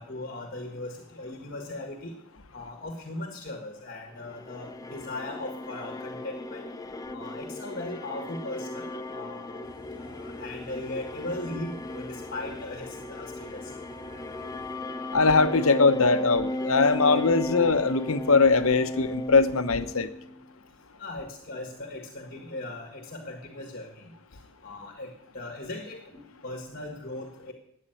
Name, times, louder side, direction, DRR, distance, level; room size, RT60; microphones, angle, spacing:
voice 1, 0.0-2.1 2.5-6.7 7.1-9.6 10.0-13.7 21.0-24.1 24.6-27.5, left 2 dB, 40° left, 3 dB, 1.6 m, -38 dB
sound 1, 4.2-20.5, left 1 dB, 15° left, 0.6 m, -36 dB
Car / Idling, 9.6-14.7, left 1 dB, 25° right, 6.8 m, -54 dB
voice 2, 15.1-20.1, left 4 dB, 70° left, 10 dB, 0.9 m, -21 dB
12.5 x 8.8 x 9.0 m, 0.78 s
head